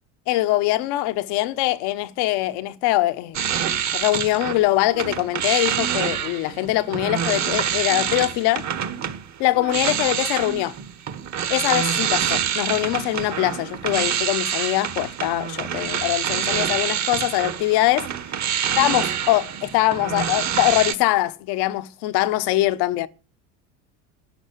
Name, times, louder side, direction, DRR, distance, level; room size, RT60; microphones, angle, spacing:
voice 1, 0.3-3.4 3.9-8.6 9.4-10.7 11.5-18.1 18.8-23.1, left 16 dB, 60° left, 1.3 m, -22 dB
sound 1, 3.3-4.6 4.9-20.9, right 9 dB, 40° right, 1.6 m, -26 dB
12.0 x 10.0 x 8.4 m
hypercardioid pair, 90°, 44 cm